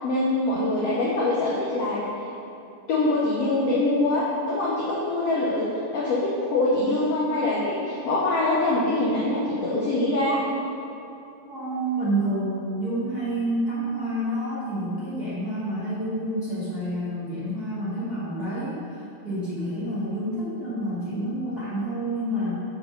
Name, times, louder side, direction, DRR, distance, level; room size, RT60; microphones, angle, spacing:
voice 1, 0.0-2.0 2.9-5.7 5.9-10.4, left 2 dB, 85° left, -6 dB, 1.3 m, -24 dB
voice 2, 11.5-22.6, right 1 dB, 45° right, -12 dB, 1.2 m, -28 dB
7.0 x 4.0 x 5.4 m, 2.8 s
omnidirectional pair, 3.9 m